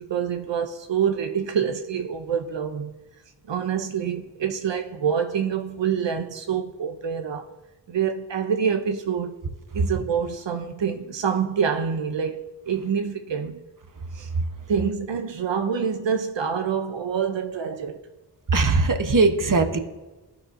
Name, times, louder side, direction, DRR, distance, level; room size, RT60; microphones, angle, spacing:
voice 1, 0.0-3.0 3.5-7.5 7.9-9.3 9.7-13.6 14.1-14.3 14.7-18.0, right 7 dB, 90° right, 0.6 m, -26 dB
voice 2, 18.5-19.8, right 3 dB, 50° right, 0.9 m, -20 dB
15.0 x 5.6 x 2.5 m
wide cardioid pair, 50°, 42 cm